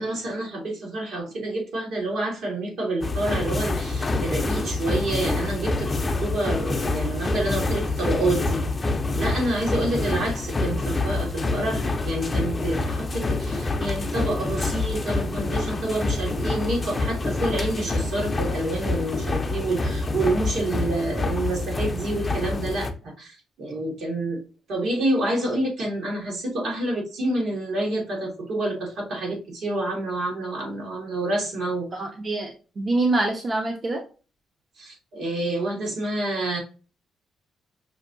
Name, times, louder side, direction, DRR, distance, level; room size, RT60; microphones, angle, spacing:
voice 1, 0.0-8.6 9.1-24.4 24.7-31.9 34.8-36.6, right 1 dB, 75° right, -1 dB, 1.8 m, -28 dB
sound 1, 3.0-22.9, left 3 dB, 25° left, 0.5 m, -27 dB
voice 2, 31.9-34.0, right 2 dB, 35° right, 2 dB, 0.6 m, -25 dB
5.6 x 2.7 x 2.6 m, 0.35 s
cardioid pair, 90°, 0 cm